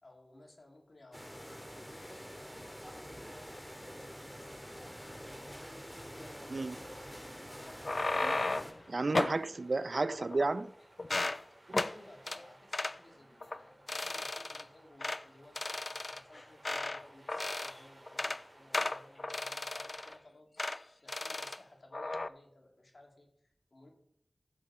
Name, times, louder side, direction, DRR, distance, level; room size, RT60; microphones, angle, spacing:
voice 1, 0.0-5.6 6.1-8.0 8.7-9.0 11.8-20.6 21.0-23.9, left 1 dB, 70° left, 2.5 m, -59 dB
sound 1, 1.1-8.7, equal, 5° left, 1.7 m, -47 dB
River in a city (Rhine Duesseldorf), 5.5-20.2, right 1 dB, 40° right, 3.3 m, -60 dB
sound 2, 7.7-8.8 9.1-9.4 10.1-10.7 11.0-11.4 11.7-11.9 12.3-12.4 12.7-13.0 13.4-13.6 13.9-14.6 15.0-15.2 15.6-17.0 17.3-17.8 18.1-18.4 18.7-20.1 20.6-20.8 21.1-21.6 21.9-22.3, left 2 dB, 55° left, 0.4 m, -35 dB
voice 2, 8.9-10.7 11.7-11.8, right 3 dB, 65° right, 0.4 m, -32 dB
15.0 x 6.5 x 4.3 m
wide cardioid pair, 50°, 0 cm